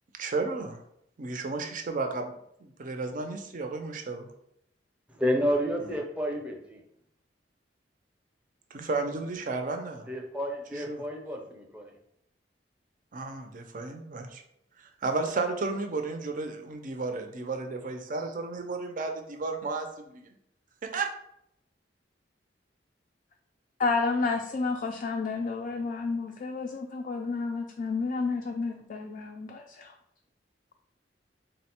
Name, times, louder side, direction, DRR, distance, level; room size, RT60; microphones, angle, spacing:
voice 1, 0.2-0.8 1.2-2.3 2.6-4.3 8.7-10.1 10.7-11.0 13.1-14.4 14.8-20.3 20.8-21.1, right 3 dB, 50° right, 5 dB, 0.5 m, -33 dB
voice 2, 5.1-6.8 10.1-11.9, equal, 5° right, 0 dB, 0.6 m, -30 dB
voice 3, 23.8-29.9, left 4 dB, 45° left, 3 dB, 0.3 m, -30 dB
3.8 x 2.1 x 4.3 m, 0.75 s
head